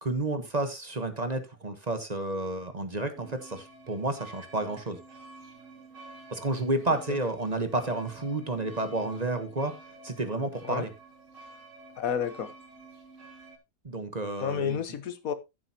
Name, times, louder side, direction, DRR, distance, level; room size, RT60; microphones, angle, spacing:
voice 1, 0.0-5.0 6.3-9.7 10.0-10.9 13.8-14.8, right 2 dB, 30° right, 9 dB, 1.2 m, -31 dB
sound 1, 3.1-13.6, right 2 dB, 60° right, 2.5 m, -50 dB
voice 2, 12.0-12.5 14.4-15.3, left 8 dB, 85° left, 12 dB, 1.5 m, -30 dB
14.0 x 7.6 x 2.9 m, 0.23 s
omnidirectional pair, 1.4 m